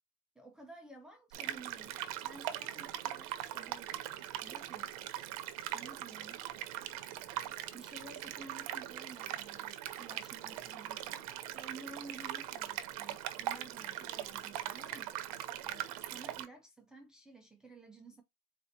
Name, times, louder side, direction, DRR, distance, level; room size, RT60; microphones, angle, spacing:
voice 1, 0.4-4.0 4.4-4.9 5.7-6.5 7.7-11.3 11.5-15.1 15.6-18.2, right 3 dB, 5° right, 0.4 m, -53 dB
sound 1, 1.3-16.5, right 13 dB, 85° right, 0.7 m, -41 dB
4.0 x 2.8 x 4.1 m
cardioid pair, 175°, 18 cm